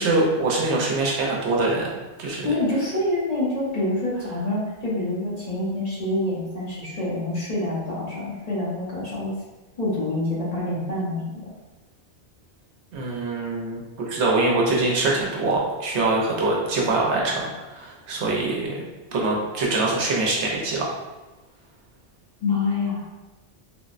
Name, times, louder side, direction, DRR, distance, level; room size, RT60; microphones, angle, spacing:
voice 1, 0.0-1.9 2.2-2.5 12.9-13.8 14.1-20.8, right 2 dB, 75° right, -2 dB, 0.9 m, -24 dB
voice 2, 2.4-9.3 9.8-11.2 22.4-23.1, left 2 dB, 40° left, -8 dB, 0.8 m, -26 dB
3.5 x 2.0 x 2.4 m, 1.1 s
omnidirectional pair, 1.2 m